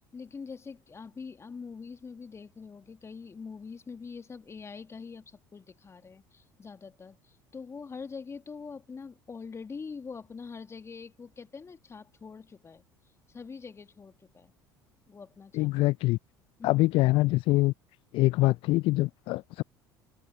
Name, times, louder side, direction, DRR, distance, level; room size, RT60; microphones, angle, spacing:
voice 1, 0.1-12.8 13.3-14.5 15.1-15.7 16.6-16.7, left 5 dB, 25° left, 1.9 m, -44 dB
voice 2, 15.6-16.2 16.6-17.7 18.1-19.6, left 20 dB, 50° left, 0.5 m, -24 dB
open air
figure-of-eight pair, 65°, 11 cm